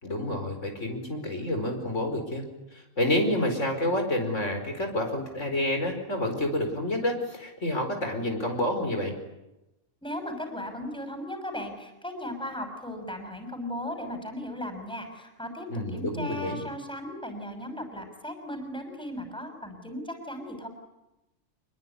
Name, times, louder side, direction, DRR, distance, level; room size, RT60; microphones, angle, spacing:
voice 1, 0.0-2.4 2.7-9.2 15.7-16.6, left 1 dB, 75° left, 4 dB, 5.2 m, -29 dB
voice 2, 10.0-20.7, left 1 dB, 5° left, 5 dB, 6.2 m, -36 dB
27.5 x 21.5 x 10.0 m, 0.96 s
omnidirectional pair, 1.3 m